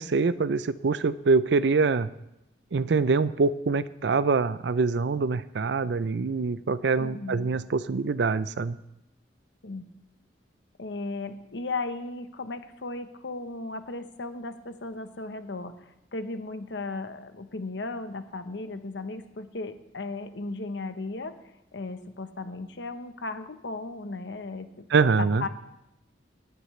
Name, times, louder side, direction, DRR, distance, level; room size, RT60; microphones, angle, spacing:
voice 1, 0.0-2.1 2.7-8.8 24.9-25.5, right 4 dB, 65° right, 15 dB, 0.5 m, -24 dB
voice 2, 7.0-7.5 9.6-9.9 10.8-21.4 21.7-24.9 25.2-25.5, left 3 dB, 75° left, 9 dB, 0.9 m, -36 dB
18.0 x 9.5 x 3.2 m, 0.88 s
head